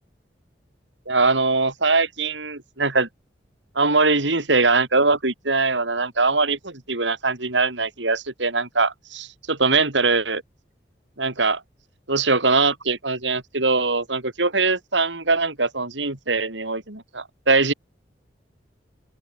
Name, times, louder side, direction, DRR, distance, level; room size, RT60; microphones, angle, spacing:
voice 1, 1.1-3.1 3.8-10.4 11.2-11.6 12.1-17.7, right 3 dB, 85° right, 4.4 m, -22 dB
open air
head